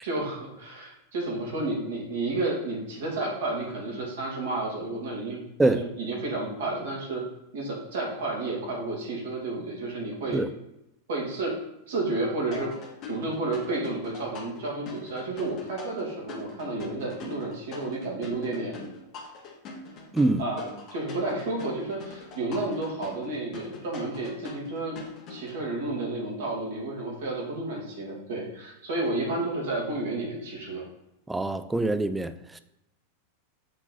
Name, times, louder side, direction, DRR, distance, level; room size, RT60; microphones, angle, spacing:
voice 1, 0.0-7.2 7.5-10.4 11.1-11.6 11.9-12.7 13.1-18.9 20.4-25.0 25.3-30.8, right 2 dB, 60° right, 2.4 m, -31 dB
sound 1, 12.5-25.6, left 4 dB, 35° left, 1.4 m, -43 dB
voice 2, 31.3-32.6, right 2 dB, 10° right, 0.4 m, -24 dB
8.0 x 3.9 x 4.2 m
figure-of-eight pair, 90°, 0 cm